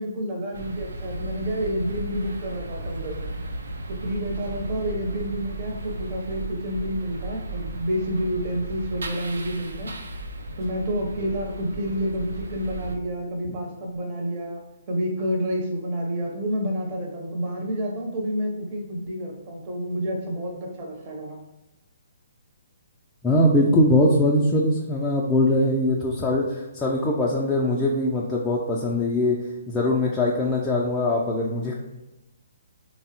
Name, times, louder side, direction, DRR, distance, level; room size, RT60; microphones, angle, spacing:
voice 1, 0.0-3.2 3.9-9.9 10.6-14.6 14.9-21.4, equal, 35° right, -1 dB, 0.6 m, -29 dB
sound 1, 0.5-13.0, right 2 dB, 80° right, 0.4 m, -35 dB
voice 2, 23.2-29.4 29.7-31.7, left 1 dB, 10° left, -5 dB, 0.3 m, -22 dB
3.2 x 2.0 x 2.8 m, 0.96 s
hypercardioid pair, 140°, 0 cm